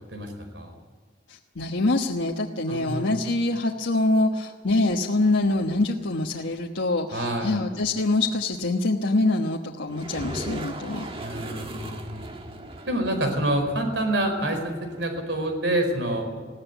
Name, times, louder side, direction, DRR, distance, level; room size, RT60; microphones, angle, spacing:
voice 1, 0.1-0.8 2.7-3.2 7.1-7.6 11.1-12.2 12.9-16.4, right 1 dB, 70° right, 5 dB, 4.7 m, -27 dB
voice 2, 1.3-11.0, left 2 dB, 85° left, -1 dB, 1.3 m, -25 dB
sound 1, 9.9-15.5, right 1 dB, 30° right, 1.6 m, -39 dB
21.0 x 16.0 x 9.3 m, 1.5 s
head